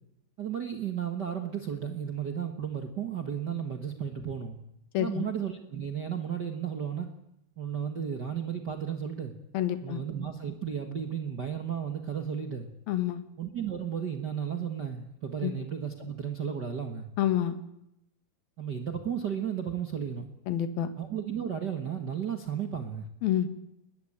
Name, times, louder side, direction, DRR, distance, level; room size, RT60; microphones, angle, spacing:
voice 1, 0.4-4.6 5.0-7.1 7.6-9.3 9.8-12.7 13.4-17.1 18.6-20.3 21.0-23.0, right 8 dB, 55° right, 5 dB, 1.1 m, -34 dB
voice 2, 4.9-5.3 9.5-10.0 12.9-13.2 15.4-15.5 17.2-17.6 20.5-20.9 23.2-23.5, left 11 dB, 75° left, 10 dB, 3.3 m, -28 dB
21.5 x 20.0 x 8.8 m, 0.81 s
omnidirectional pair, 4.4 m